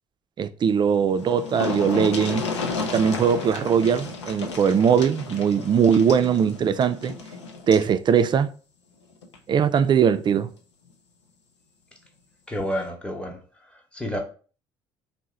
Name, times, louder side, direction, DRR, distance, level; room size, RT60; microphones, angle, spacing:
voice 1, 0.4-2.5 2.9-7.1 7.7-8.5 9.5-10.5, right 7 dB, 30° right, 0.3 m, -20 dB
sound 1, 0.8-0.9 1.1-7.9 9.2-9.4 9.8-9.9, left 4 dB, 85° left, 0.4 m, -32 dB
voice 2, 12.5-14.2, equal, 5° left, 0.8 m, -30 dB
2.8 x 2.0 x 3.6 m
hypercardioid pair, 60°, 14 cm